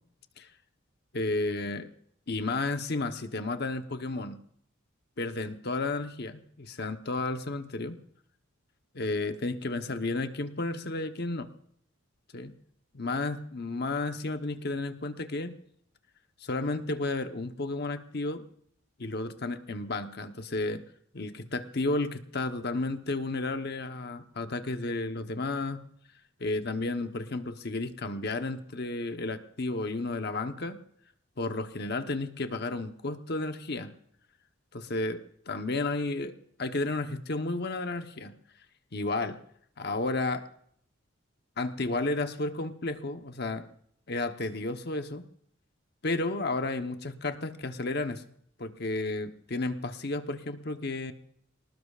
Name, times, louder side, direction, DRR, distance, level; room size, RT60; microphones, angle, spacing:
voice 1, 1.1-1.9 2.3-4.4 5.2-8.0 8.9-11.5 12.3-12.5 12.9-15.6 16.4-18.4 19.0-20.8 21.1-25.8 26.4-30.8 31.4-33.9 34.7-36.3 36.6-38.3 38.9-39.4 39.8-40.5 41.6-43.7 44.1-45.3 46.0-48.2 48.6-51.1, left 2 dB, 50° left, 8 dB, 1.0 m, -32 dB
24.5 x 19.5 x 2.5 m, 0.66 s
head